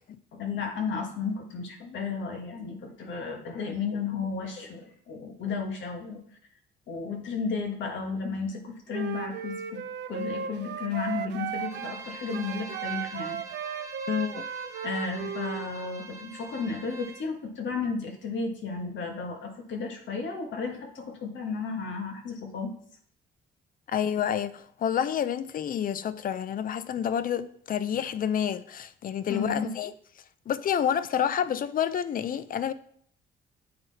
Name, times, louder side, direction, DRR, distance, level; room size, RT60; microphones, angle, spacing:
voice 1, 0.3-6.2 6.9-9.8 10.1-13.4 14.8-22.7 29.3-29.7, left 5 dB, 70° left, 1.5 m, -33 dB
Wind instrument woodwind instrument, 8.9-12.0 12.3-15.7, right 7 dB, 60° right, 0.7 m, -35 dB
Bowed string instrument, 11.6-17.2, right 3 dB, 15° right, 1.4 m, -44 dB
voice 2, 14.1-14.4 23.9-29.9 30.5-32.7, left 9 dB, 45° left, 0.5 m, -29 dB
8.5 x 3.9 x 4.1 m
cardioid pair, 90°, 20 cm